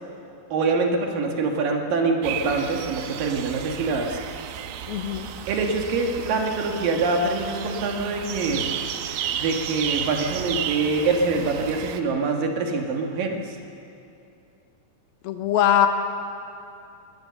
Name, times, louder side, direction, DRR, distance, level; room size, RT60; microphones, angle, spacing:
voice 1, 0.5-4.2 5.5-8.7 9.3-13.6, right 3 dB, 65° right, 2 dB, 3.2 m, -25 dB
sound 1, 2.2-12.0, right 9 dB, 85° right, 2.8 m, -33 dB
voice 2, 4.9-5.3 15.2-15.9, left 10 dB, 80° left, 7 dB, 2.9 m, -21 dB
21.0 x 18.0 x 7.0 m, 2.6 s
omnidirectional pair, 4.4 m